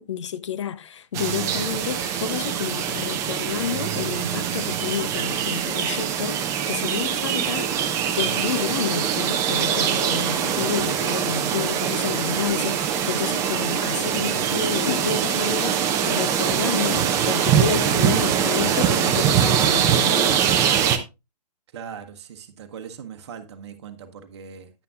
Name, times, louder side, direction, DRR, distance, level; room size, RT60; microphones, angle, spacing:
voice 1, 0.0-20.5, left 8 dB, 45° left, 0.6 m, -30 dB
sound 1, 1.1-21.0, right 9 dB, 15° right, 0.6 m, -23 dB
voice 2, 21.7-24.7, right 7 dB, 40° right, 1.2 m, -40 dB
9.9 x 9.2 x 2.4 m
figure-of-eight pair, 125°, 21 cm